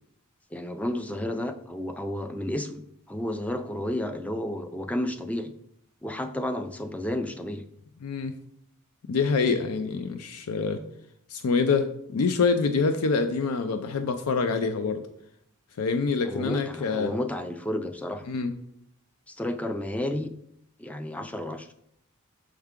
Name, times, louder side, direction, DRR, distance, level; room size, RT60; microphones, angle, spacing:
voice 1, 0.5-5.5 6.0-7.6 16.2-18.2 19.3-20.3 20.8-21.7, left 1 dB, 5° left, 8 dB, 0.3 m, -31 dB
voice 2, 8.0-8.3 9.1-10.8 11.3-15.0 15.8-17.1 18.3-18.5, left 4 dB, 85° left, 8 dB, 0.4 m, -26 dB
6.5 x 4.6 x 3.6 m, 0.74 s
head